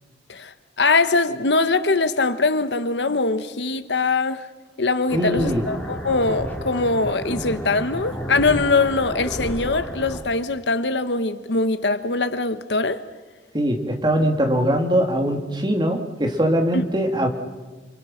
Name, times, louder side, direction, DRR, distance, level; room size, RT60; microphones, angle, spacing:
voice 1, 0.3-4.5 4.8-13.0 16.7-16.8, left 3 dB, 80° left, 1.3 m, -22 dB
sound 1, 5.1-10.2, equal, 10° left, 3.7 m, -31 dB
voice 2, 5.1-5.6 13.5-17.3, equal, 25° right, 3.1 m, -21 dB
29.5 x 26.5 x 5.9 m
head